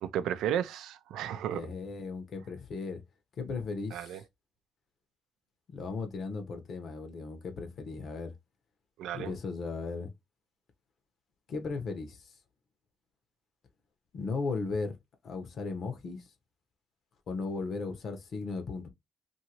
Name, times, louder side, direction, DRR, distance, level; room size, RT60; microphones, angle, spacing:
voice 1, 0.0-1.6 3.9-4.2 9.0-9.3, right 10 dB, 85° right, 0.4 m, -33 dB
voice 2, 1.5-3.0 3.4-4.2 5.7-8.3 9.1-10.1 11.5-12.4 14.1-15.0 15.2-16.3 17.3-18.9, left 4 dB, 60° left, 0.9 m, -36 dB
2.8 x 2.6 x 2.9 m
cardioid pair, 90°, 0 cm